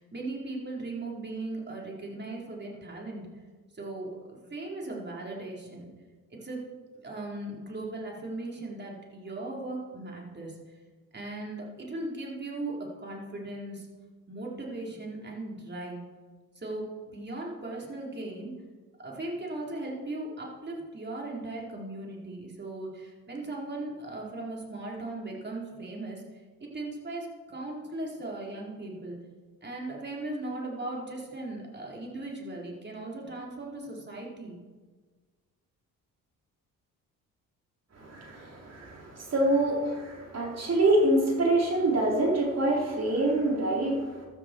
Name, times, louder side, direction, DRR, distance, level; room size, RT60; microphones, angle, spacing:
voice 1, 0.0-3.3 3.7-5.9 6.3-6.6 6.9-10.6 11.1-13.9 14.3-16.0 16.6-18.5 19.0-29.2 29.6-34.6, right 2 dB, 30° right, -2 dB, 4.6 m, -38 dB
voice 2, 37.9-44.3, right 2 dB, 45° right, -2 dB, 4.4 m, -26 dB
15.5 x 12.5 x 4.7 m, 1.4 s
cardioid pair, 75°, 35 cm